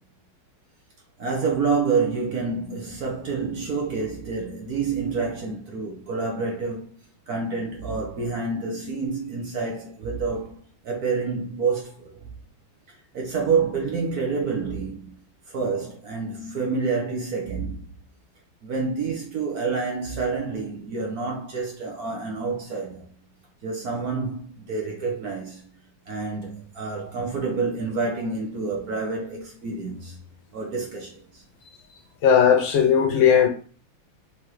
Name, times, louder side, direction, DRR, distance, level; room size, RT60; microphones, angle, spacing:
voice 1, 1.2-6.9 7.3-10.5 10.8-12.3 13.1-15.1 15.5-17.8 18.6-23.1 23.6-25.6 26.1-30.2 30.5-31.4, right 4 dB, 55° right, 1.2 m, -28 dB
voice 2, 32.2-33.5, left 8 dB, 75° left, 1.3 m, -17 dB
4.8 x 3.5 x 3.1 m
omnidirectional pair, 2.3 m